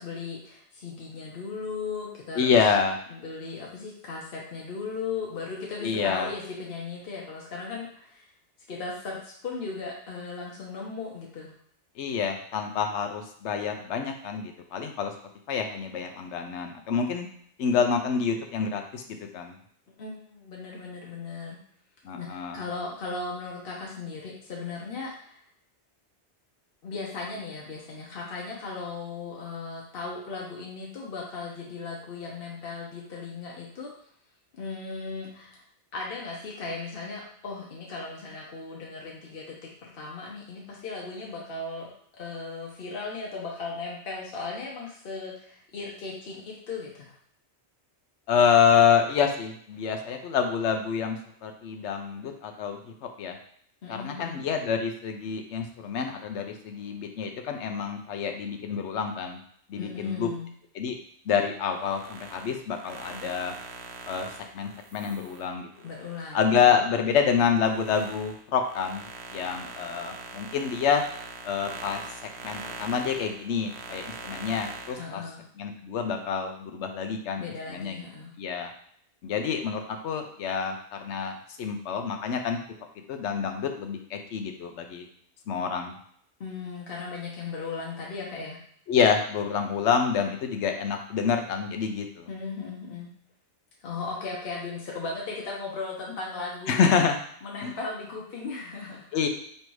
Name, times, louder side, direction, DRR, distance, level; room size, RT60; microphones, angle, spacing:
voice 1, 0.0-2.6 3.1-8.3 8.7-11.5 20.0-21.6 22.2-25.4 26.8-33.9 34.5-35.6 35.9-47.1 53.8-54.4 59.8-60.5 65.8-66.8 75.0-75.4 77.4-78.3 86.4-88.6 92.3-93.1 93.8-96.9 97.4-99.1, left 4 dB, 60° left, -3 dB, 1.0 m, -37 dB
voice 2, 2.4-3.0 5.8-6.3 12.0-15.1 15.5-17.3 17.6-19.0 19.3-19.5 22.0-22.6 48.3-53.4 53.9-59.4 59.7-60.3 60.7-61.0 61.3-63.5 64.1-64.3 64.5-65.7 66.3-69.1 69.3-71.0 71.4-72.0 72.4-75.2 75.6-77.4 77.7-78.0 78.4-78.7 79.2-82.6 83.1-85.1 85.5-85.9 88.9-92.3 96.7-97.2 97.6-97.7 99.1-99.3, left 7 dB, 90° left, 4 dB, 0.9 m, -27 dB
sound 1, 61.7-66.8 67.2-75.1, right 4 dB, 75° right, 0.8 m, -42 dB
3.3 x 2.7 x 4.6 m, 0.65 s
omnidirectional pair, 1.1 m